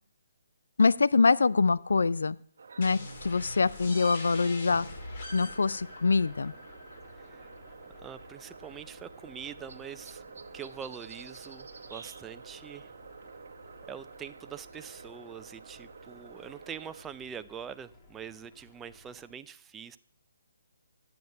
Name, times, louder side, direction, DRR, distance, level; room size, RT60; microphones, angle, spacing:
voice 1, 0.8-2.4 2.8-4.9 5.3-6.5, left 4 dB, 80° left, 17 dB, 0.4 m, -24 dB
sound 1, 2.6-17.0, right 5 dB, 70° right, 0.8 m, -50 dB
sound 2, 2.8-8.3, left 2 dB, 45° left, 2.6 m, -44 dB
sound 3, 4.8-19.3, left 2 dB, 20° left, 1.5 m, -56 dB
voice 2, 8.0-10.2 10.5-12.9 13.9-20.0, right 8 dB, 10° right, 12 dB, 0.3 m, -44 dB
10.5 x 7.8 x 5.3 m, 0.62 s
hypercardioid pair, 150°, 0 cm